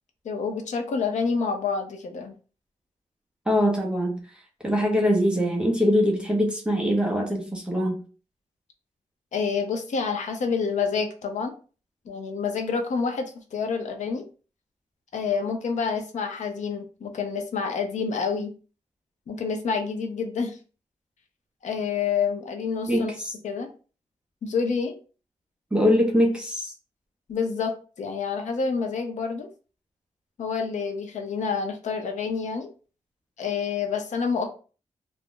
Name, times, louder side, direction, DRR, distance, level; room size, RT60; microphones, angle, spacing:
voice 1, 0.2-2.3 9.3-11.5 12.1-14.3 15.1-18.5 19.3-20.6 21.6-23.1 23.4-23.7 24.4-24.9 27.3-29.5 30.4-32.7 33.4-34.5, left 5 dB, 80° left, 0.6 m, -28 dB
voice 2, 3.5-4.3 4.6-8.0 22.9-23.3 25.7-26.7, equal, 10° right, 0.5 m, -23 dB
2.4 x 2.0 x 3.6 m
wide cardioid pair, 180°, 12 cm